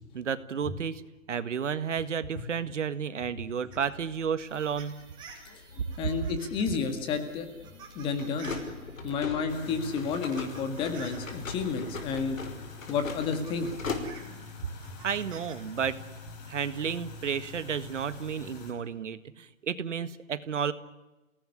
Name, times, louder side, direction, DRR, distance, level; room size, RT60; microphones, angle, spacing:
voice 1, 0.1-1.0 1.3-5.0 14.2-14.5 15.0-16.0 16.5-20.7, right 7 dB, 60° right, 13 dB, 1.8 m, -32 dB
sound 1, 3.7-9.2 9.9-11.3 12.5-12.6 13.0-15.6 15.9-16.5, right 6 dB, 10° right, 4.3 m, -51 dB
sound 2, 3.8-14.5, left 4 dB, 75° left, 5.7 m, -41 dB
voice 2, 6.0-7.7 8.0-8.6 9.0-12.4 12.9-13.7, left 5 dB, 15° left, 8 dB, 2.0 m, -31 dB
sound 3, 9.5-18.7, left 4 dB, 30° left, 5.7 m, -46 dB
28.5 x 19.0 x 9.9 m, 1.1 s
hypercardioid pair, 165°, 40 cm